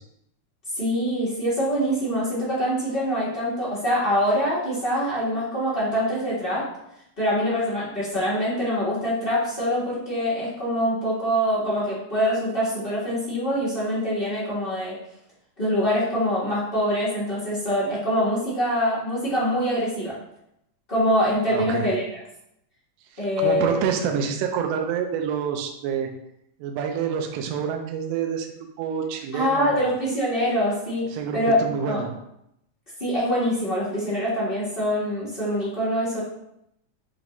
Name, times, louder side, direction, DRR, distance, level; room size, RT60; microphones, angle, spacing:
voice 1, 0.7-6.6 7.2-15.0 15.6-20.1 20.9-22.0 23.2-23.8 29.3-31.0 31.3-32.0 33.0-36.2, equal, 40° left, -9 dB, 0.7 m, -24 dB
voice 2, 21.5-21.9 23.4-26.1 26.6-28.5 28.8-29.8 31.1-32.1, right 7 dB, 85° right, 4 dB, 1.4 m, -27 dB
7.0 x 2.4 x 3.0 m, 0.79 s
omnidirectional pair, 3.5 m